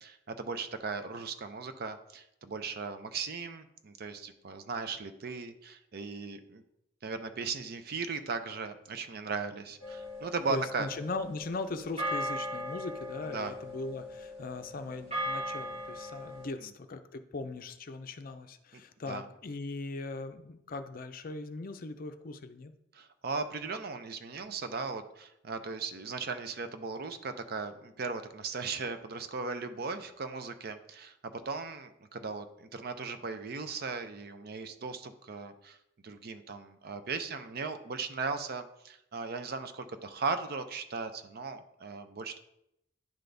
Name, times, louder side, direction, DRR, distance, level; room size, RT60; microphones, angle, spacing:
voice 1, 0.0-6.6 7.0-10.9 13.2-13.6 16.6-16.7 18.7-19.3 22.9-35.8 36.0-42.4, right 4 dB, 55° right, 9 dB, 0.5 m, -37 dB
sound 1, 9.8-16.4, equal, 35° right, 2.6 m, -38 dB
voice 2, 10.5-22.7, left 3 dB, 50° left, 9 dB, 0.5 m, -39 dB
10.5 x 3.9 x 3.4 m, 0.81 s
head